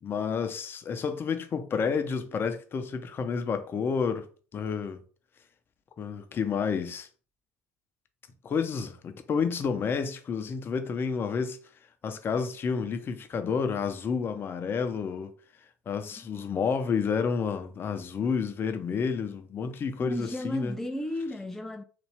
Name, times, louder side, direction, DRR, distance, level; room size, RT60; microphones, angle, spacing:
voice 1, 0.0-4.3 4.5-5.0 6.0-7.1 8.4-11.6 12.0-15.3 15.9-20.7, left 6 dB, 35° left, 0.7 m, -30 dB
voice 2, 20.0-21.8, left 1 dB, 5° left, 0.4 m, -34 dB
4.1 x 2.5 x 3.3 m
hypercardioid pair, 65°, 6 cm